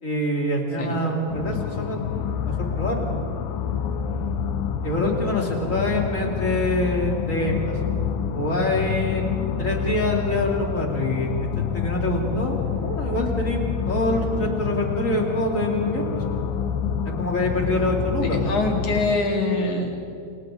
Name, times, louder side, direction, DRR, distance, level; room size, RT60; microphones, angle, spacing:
voice 1, 0.0-2.0 2.5-3.1 4.8-7.8 8.3-9.2 9.6-11.3 11.6-12.6 12.8-13.6 13.9-16.2 17.2-18.4 19.1-19.2, left 1 dB, 20° left, -1 dB, 2.9 m, -25 dB
sound 1, 1.3-19.2, left 7 dB, 75° left, 2.7 m, -27 dB
voice 2, 18.2-20.0, left 2 dB, 45° left, 1 dB, 3.3 m, -24 dB
28.5 x 28.0 x 3.9 m, 2.7 s
omnidirectional pair, 4.2 m